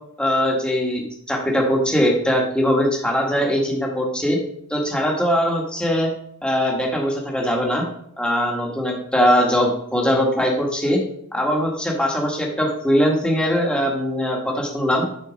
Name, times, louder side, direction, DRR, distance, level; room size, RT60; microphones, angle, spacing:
voice 1, 0.2-4.4 4.7-6.1 6.4-7.8 8.2-11.0 11.3-15.0, equal, 5° left, -1 dB, 1.3 m, -21 dB
8.1 x 4.2 x 5.0 m, 0.70 s
head